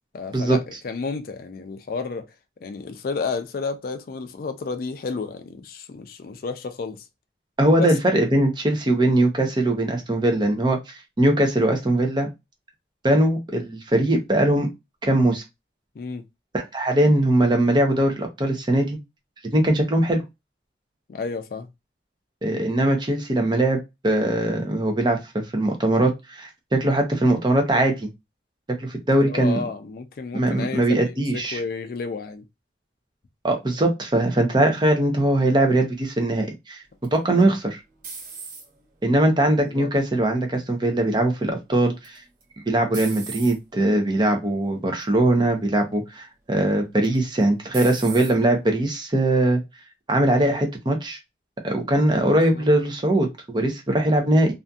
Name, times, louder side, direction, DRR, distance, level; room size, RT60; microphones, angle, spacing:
voice 1, 0.1-2.3 2.6-7.0 7.8-7.9 16.0-16.2 21.1-21.7 29.1-32.4 37.3-37.5 39.5-39.9 52.2-52.7, left 4 dB, 50° left, 0.3 m, -32 dB
voice 2, 7.6-12.3 13.0-14.7 15.0-15.4 16.7-19.0 19.5-20.2 22.4-28.1 28.8-29.6 30.3-31.6 33.4-36.8 37.1-37.8 39.0-42.2 42.7-49.6 50.1-51.2 51.6-54.5, right 1 dB, 25° right, 0.6 m, -21 dB
sound 1, 37.0-38.9 39.5-40.0 42.0-42.4 42.9-43.6 44.3-44.6 45.0-45.1 47.0-47.4 47.7-48.3, right 5 dB, 50° right, 0.8 m, -37 dB
2.6 x 2.5 x 2.2 m
head